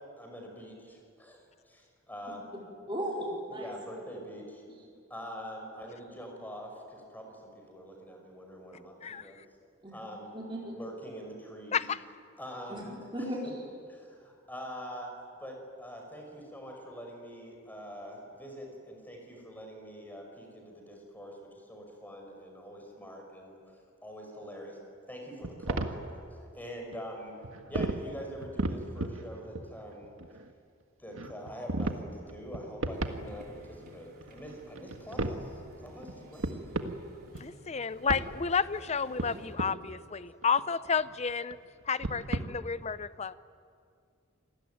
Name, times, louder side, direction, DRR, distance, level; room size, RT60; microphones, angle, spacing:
voice 1, 0.2-1.4 2.1-2.4 3.5-4.6 5.1-9.4 9.9-10.3 10.7-11.8 12.4-13.5 13.9-15.1 15.4-23.7 24.0-24.8 25.1-27.3 27.7-30.1 31.0-36.5, equal, 10° left, 2 dB, 5.7 m, -44 dB
voice 2, 2.9-3.7 9.8-9.9 10.3-10.7 12.7-12.8 13.1-13.4, right 1 dB, 25° right, -4 dB, 4.7 m, -35 dB
voice 3, 9.0-9.4 11.7-12.0 37.4-41.6 41.9-43.3, left 6 dB, 35° left, 15 dB, 0.6 m, -31 dB
sound 1, 25.4-26.0 26.9-27.0 27.4-28.0 28.3-29.2 29.5-30.5 31.1-32.0 32.3-33.6 33.9-34.0 34.2-35.4 36.0-36.1 36.4-37.0 37.3-37.7 38.1-38.3 38.9-39.7 40.4-41.5 41.8-42.4, right 2 dB, 85° right, 1.7 m, -34 dB
sound 2, 32.9-39.6, equal, 50° right, 4.5 m, -55 dB
27.5 x 20.0 x 9.3 m, 2.2 s
head